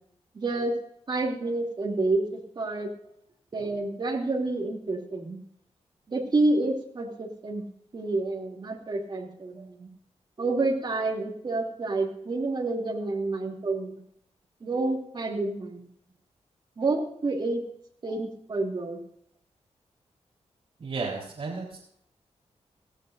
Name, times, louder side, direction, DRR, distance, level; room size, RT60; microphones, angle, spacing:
voice 1, 0.3-0.7 1.1-2.9 3.5-5.4 6.1-7.6 7.9-9.9 10.4-14.0 14.6-15.9 16.8-17.6 18.0-19.0, right 2 dB, 40° right, -1 dB, 2.8 m, -29 dB
voice 2, 20.8-21.8, right 4 dB, 55° right, -5 dB, 3.7 m, -33 dB
18.0 x 16.0 x 2.6 m, 0.69 s
wide cardioid pair, 165°, 12 cm